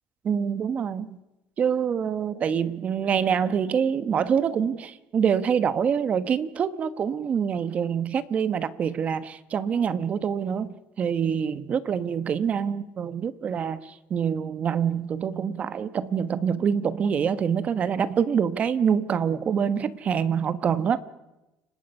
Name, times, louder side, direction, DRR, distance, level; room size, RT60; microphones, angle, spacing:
voice 1, 0.2-1.2 1.6-21.0, right 7 dB, 40° right, 1.1 m, -25 dB
30.0 x 19.0 x 5.5 m
cardioid pair, 125°, 4 cm